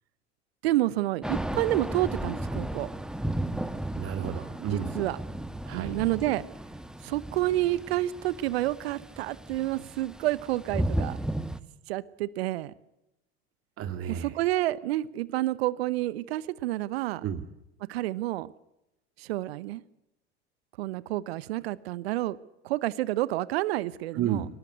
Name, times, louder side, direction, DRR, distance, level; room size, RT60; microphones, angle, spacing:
voice 1, 0.6-2.9 4.7-5.2 5.7-6.5 7.0-11.2 11.9-12.7 14.1-17.2 17.9-18.5 19.2-19.8 20.8-22.4 22.6-24.4, right 16 dB, 65° right, 0.9 m, -29 dB
Thunder / Rain, 1.2-11.6, right 1 dB, ahead, 1.6 m, -34 dB
voice 2, 4.0-4.9 5.6-5.9 13.8-14.4 17.2-17.4 24.1-24.5, right 9 dB, 40° right, 2.0 m, -31 dB
23.5 x 20.0 x 8.1 m
figure-of-eight pair, 75°, 33 cm